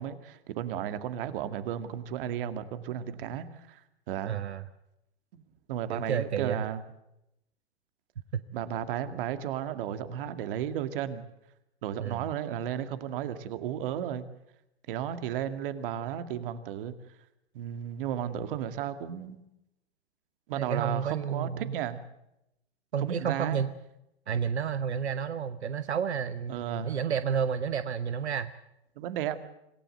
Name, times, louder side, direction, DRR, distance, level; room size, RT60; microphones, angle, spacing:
voice 1, 0.0-3.8 4.1-4.4 5.3-5.4 5.7-6.8 8.5-11.2 11.8-14.3 14.9-16.9 17.5-19.4 20.5-22.0 23.0-23.6 26.5-27.0 29.0-29.4, right 10 dB, 55° right, 10 dB, 2.2 m, -34 dB
voice 2, 4.2-4.6 5.9-6.6 8.3-8.4 12.0-12.2 20.6-21.8 22.9-23.7 24.3-28.5, right 7 dB, 85° right, 12 dB, 1.1 m, -31 dB
26.5 x 16.5 x 7.9 m, 0.87 s
hypercardioid pair, 115°, 32 cm